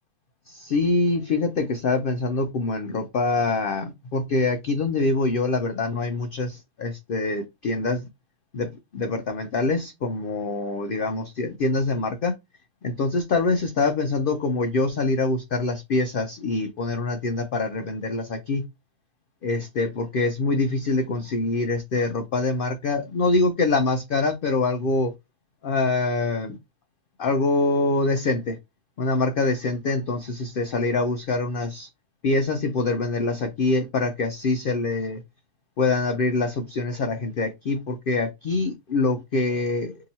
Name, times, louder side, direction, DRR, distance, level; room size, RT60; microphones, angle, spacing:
voice 1, 0.5-8.1 8.5-12.3 12.8-18.6 19.4-25.1 25.6-26.6 27.2-28.6 29.0-31.9 32.2-35.2 35.8-40.0, left 3 dB, 80° left, 0.5 m, -25 dB
2.8 x 2.8 x 4.0 m
omnidirectional pair, 1.5 m